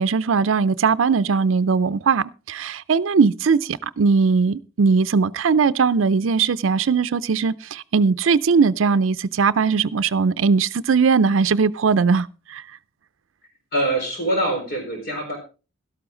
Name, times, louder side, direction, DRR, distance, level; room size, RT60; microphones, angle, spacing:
voice 1, 0.0-12.6, right 5 dB, 85° right, 0.5 m, -19 dB
voice 2, 13.7-15.4, right 1 dB, 50° left, 4.5 m, -24 dB
12.5 x 12.0 x 3.8 m
head